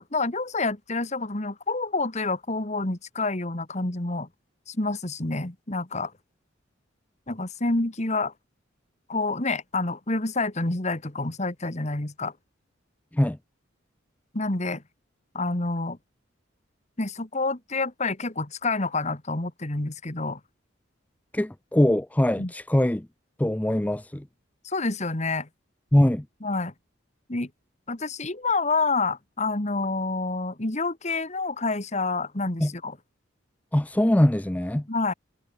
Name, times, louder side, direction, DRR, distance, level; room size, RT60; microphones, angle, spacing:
voice 1, 0.0-4.3 4.7-6.1 7.3-8.3 9.1-12.3 14.3-14.8 15.3-16.0 17.0-20.4 22.4-22.5 24.6-25.5 26.4-26.7 27.3-27.5 27.9-33.0 34.9-35.1, left 3 dB, 35° left, 1.8 m, -28 dB
voice 2, 21.3-23.1 23.4-24.3 25.9-26.3 32.6-32.7 33.7-34.9, left 1 dB, 10° left, 0.5 m, -22 dB
head